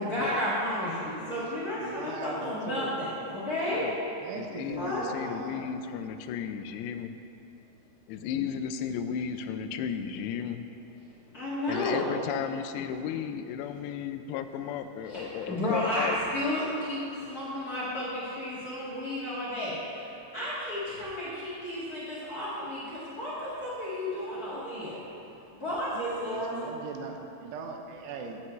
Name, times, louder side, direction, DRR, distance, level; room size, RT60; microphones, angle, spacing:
voice 1, 0.0-3.9 4.7-5.1 11.3-12.1 15.0-25.0 25.5-26.5, left 1 dB, 45° left, -9 dB, 1.2 m, -32 dB
voice 2, 1.2-3.0 4.1-5.7 26.0-28.4, right 5 dB, 85° right, 3 dB, 2.9 m, -40 dB
voice 3, 4.3-7.2 8.1-10.7 11.7-16.2, left 8 dB, 90° left, 9 dB, 2.7 m, -34 dB
14.5 x 8.8 x 3.2 m, 2.8 s
omnidirectional pair, 4.8 m